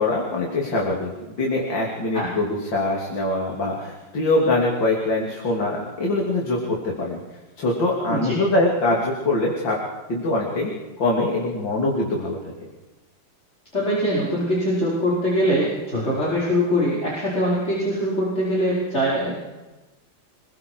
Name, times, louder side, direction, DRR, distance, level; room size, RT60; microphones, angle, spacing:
voice 1, 0.0-7.2 7.6-9.8 10.1-10.7 11.0-12.7, left 2 dB, 75° left, -1 dB, 3.8 m, -23 dB
voice 2, 13.7-19.3, equal, 35° left, -6 dB, 5.5 m, -22 dB
27.5 x 21.5 x 4.8 m, 1.1 s
omnidirectional pair, 2.0 m